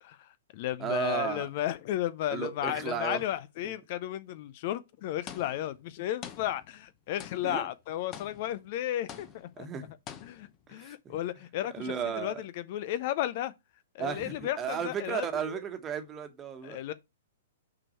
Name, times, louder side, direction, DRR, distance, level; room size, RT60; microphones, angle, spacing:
voice 1, 0.0-9.7 10.2-13.5 13.9-15.6 16.6-16.9, left 13 dB, 50° left, 0.5 m, -34 dB
voice 2, 0.8-1.5 2.3-3.2 7.4-7.7 9.6-9.9 10.7-10.9 11.8-12.4 14.0-16.8, right 7 dB, 25° right, 1.3 m, -34 dB
sound 1, 5.3-5.9 6.2-6.9 7.2-7.7 8.1-8.7 9.1-9.6 10.1-10.7, left 9 dB, 30° left, 0.9 m, -46 dB
6.2 x 4.6 x 4.4 m
hypercardioid pair, 115°, 0 cm